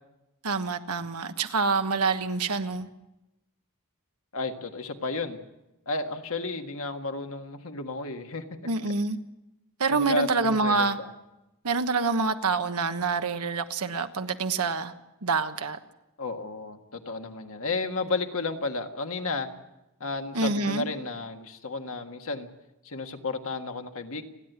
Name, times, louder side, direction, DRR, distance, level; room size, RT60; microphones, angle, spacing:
voice 1, 0.4-2.9 8.6-9.2 9.8-11.0 11.6-14.9 15.2-15.8 20.3-20.9, right 4 dB, 85° right, 8 dB, 1.3 m, -26 dB
voice 2, 4.3-5.4 5.8-8.4 9.9-11.1 16.2-19.5 20.0-22.5 22.8-24.2, left 3 dB, 65° left, 5 dB, 1.7 m, -32 dB
29.5 x 11.0 x 8.1 m, 0.95 s
head